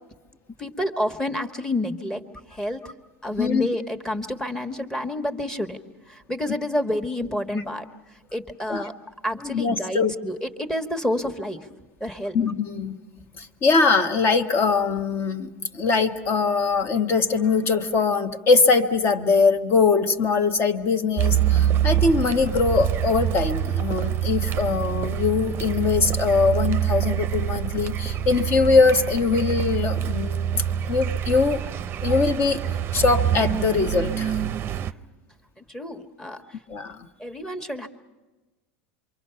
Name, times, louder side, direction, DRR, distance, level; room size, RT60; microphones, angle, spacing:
voice 1, 0.6-2.2 2.5-2.8 3.2-5.8 6.1-7.8 8.3-8.9 9.2-11.7 12.0-12.4 33.0-33.1 35.6-36.4 37.2-37.9, left 1 dB, 10° left, 4 dB, 1.4 m, -29 dB
voice 2, 3.4-3.7 8.7-8.8 9.4-10.1 12.3-13.0 13.4-31.6 32.0-32.6 32.9-34.4 36.7-37.0, left 4 dB, 40° left, 7 dB, 1.4 m, -22 dB
Car, 21.2-34.9, right 10 dB, 35° right, 0.6 m, -25 dB
27.0 x 24.0 x 5.7 m, 1.2 s
supercardioid pair, 120°, 7 cm